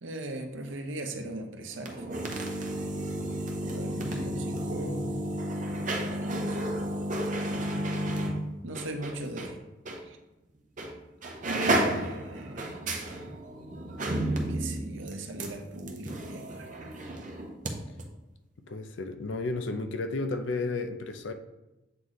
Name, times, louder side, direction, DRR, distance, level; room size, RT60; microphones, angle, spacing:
voice 1, 0.0-2.5 3.6-5.1 5.7-6.9 7.5-7.8 8.6-9.6 10.1-10.2 11.4-13.0 14.5-16.7, right 1 dB, 75° right, 0.7 m, -38 dB
sound 1, 1.7-9.5 9.9-10.0 10.8-11.0 11.2-17.7 18.0-18.1, right 1 dB, 40° right, 0.7 m, -32 dB
voice 2, 18.7-21.3, left 3 dB, 70° left, 0.5 m, -32 dB
7.6 x 3.1 x 3.9 m
head